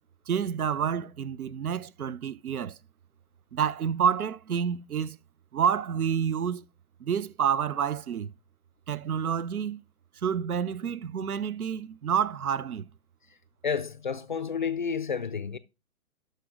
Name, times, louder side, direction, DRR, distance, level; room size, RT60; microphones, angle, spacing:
voice 1, 0.3-2.8 3.5-5.2 5.5-6.6 7.0-8.3 8.9-9.8 10.2-12.9, right 8 dB, 75° right, 0.7 m, -28 dB
voice 2, 13.6-15.6, left 6 dB, 35° left, 0.5 m, -30 dB
12.5 x 5.2 x 3.7 m
figure-of-eight pair, 140°, 44 cm